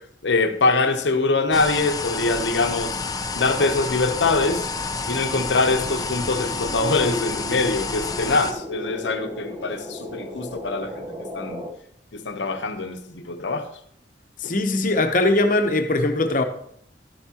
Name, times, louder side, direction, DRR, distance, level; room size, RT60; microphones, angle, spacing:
voice 1, 0.2-3.0 3.3-4.7 5.1-11.1 11.3-11.7 12.1-13.7 14.4-14.5, left 3 dB, 80° left, 0.9 m, -23 dB
sound 1, 1.5-8.5, left 4 dB, 20° left, 0.5 m, -29 dB
sound 2, 4.1-7.2, equal, ahead, 2.2 m, -45 dB
sound 3, 5.6-11.7, equal, 30° right, 1.0 m, -36 dB
voice 2, 14.4-16.4, left 2 dB, 45° left, 0.9 m, -20 dB
12.0 x 8.3 x 2.9 m
head